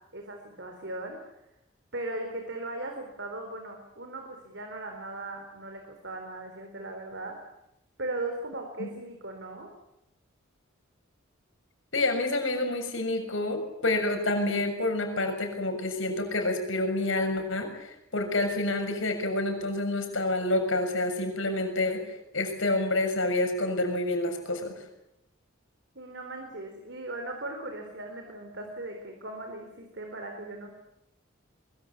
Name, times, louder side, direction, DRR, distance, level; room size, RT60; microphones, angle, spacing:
voice 1, 0.1-1.2 1.9-7.4 8.0-9.7 25.9-30.7, right 2 dB, 60° right, 3 dB, 4.3 m, -38 dB
voice 2, 11.9-22.0 22.3-24.7, left 2 dB, 75° left, 5 dB, 7.0 m, -28 dB
23.5 x 23.5 x 8.6 m, 0.84 s
head